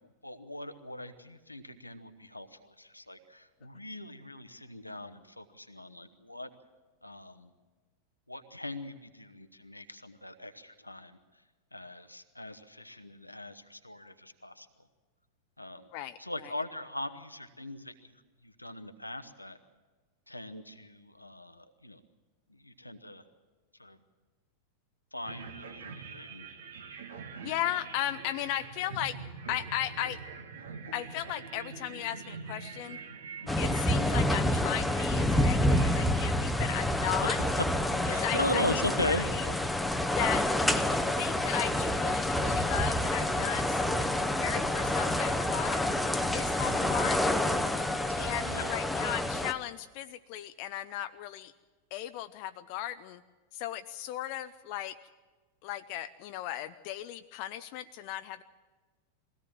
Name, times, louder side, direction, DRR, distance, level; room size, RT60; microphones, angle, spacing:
voice 1, 0.2-6.5 7.0-7.5 8.3-11.2 11.7-14.7 15.6-15.9 16.2-18.1 18.4-19.6 20.3-22.0 22.6-23.2 23.8-24.0 25.1-26.5 33.4-33.6 37.2-37.3 38.0-39.3 46.7-46.9 48.1-48.7, left 1 dB, 85° left, 8 dB, 1.1 m, -39 dB
voice 2, 15.9-16.5 27.4-29.2 29.5-30.2 30.9-33.0 33.6-37.4 38.1-38.8 39.1-39.5 40.1-44.1 44.4-45.8 46.3-47.5 48.2-51.5 51.9-53.2 53.5-55.0 55.6-58.4, left 12 dB, 45° left, 11 dB, 0.6 m, -36 dB
sound 1, 25.3-36.3, right 5 dB, 65° right, 1.7 m, -45 dB
sound 2, 33.5-49.5, left 1 dB, 5° left, 0.9 m, -28 dB
22.0 x 17.0 x 7.5 m, 1.3 s
figure-of-eight pair, 90°, 0 cm